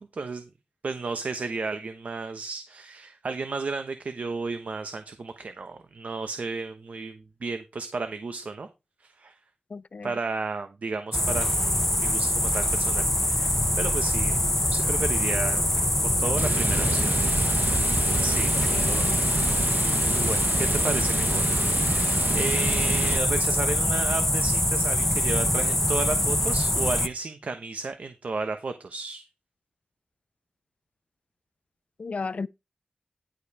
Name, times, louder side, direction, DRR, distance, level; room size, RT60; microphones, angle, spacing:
voice 1, 0.1-0.5 0.8-8.7 9.0-9.3 10.0-13.5 13.8-14.4 14.7-15.6 16.0-17.1 18.2-18.5 19.8-21.4 22.3-29.2, right 4 dB, 65° right, 1.1 m, -33 dB
voice 2, 9.7-10.1 18.7-19.1 32.0-32.5, left 4 dB, 50° left, 0.5 m, -34 dB
sound 1, 11.1-27.1, left 1 dB, 10° left, 1.0 m, -24 dB
Water, 16.4-23.2, right 4 dB, 85° right, 1.1 m, -31 dB
11.5 x 5.2 x 4.8 m
wide cardioid pair, 105°, 3 cm